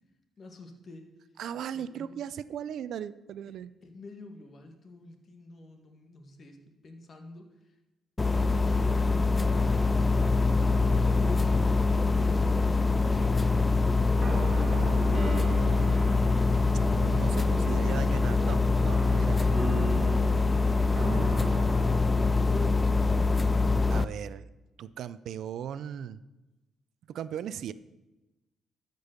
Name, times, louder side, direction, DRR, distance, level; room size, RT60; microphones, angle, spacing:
voice 1, 0.4-1.1 1.7-2.2 3.5-3.6 3.8-7.5 8.2-9.0 10.6-11.7 12.2-13.4 22.1-23.2, left 3 dB, 45° left, 5 dB, 1.8 m, -46 dB
voice 2, 1.4-3.7 14.6-16.1 16.9-19.5 20.9-21.3 23.9-24.5 24.8-26.2 27.1-27.7, right 9 dB, 70° right, 16 dB, 0.4 m, -38 dB
sound 1, 8.2-24.0, left 3 dB, 20° left, 0.4 m, -24 dB
sound 2, 14.1-22.6, right 2 dB, 35° right, 3.0 m, -38 dB
12.5 x 5.3 x 6.7 m, 1.0 s
cardioid pair, 90°, 0 cm